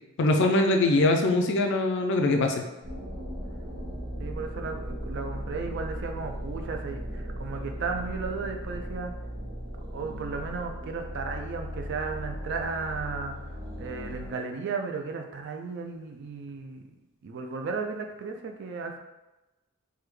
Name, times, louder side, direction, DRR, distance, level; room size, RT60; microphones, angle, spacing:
voice 1, 0.2-2.5, left 2 dB, 55° left, 4 dB, 0.3 m, -22 dB
sound 1, 2.8-14.3, equal, 90° right, 1.3 m, -37 dB
voice 2, 4.2-9.1 9.9-16.9 17.2-19.0, right 4 dB, 50° right, 4 dB, 0.3 m, -35 dB
3.4 x 2.2 x 3.1 m, 1.0 s
head